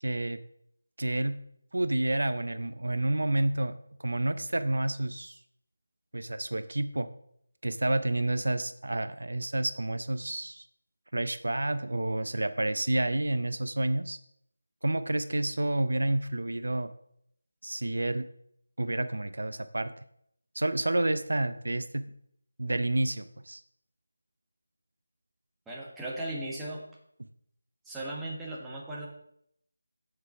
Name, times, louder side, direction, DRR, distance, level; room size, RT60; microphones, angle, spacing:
voice 1, 0.0-0.4 1.0-1.3 1.7-3.7 4.0-5.4 6.1-7.1 7.6-10.7 11.1-14.2 14.8-16.9 17.6-18.2 18.8-19.9 20.5-22.0 22.6-23.6, right 1 dB, 70° right, 11 dB, 0.6 m, -29 dB
voice 2, 25.7-26.9 27.8-29.1, right 1 dB, 5° right, -5 dB, 1.4 m, -37 dB
6.9 x 6.8 x 5.6 m, 0.72 s
figure-of-eight pair, 160°, 0 cm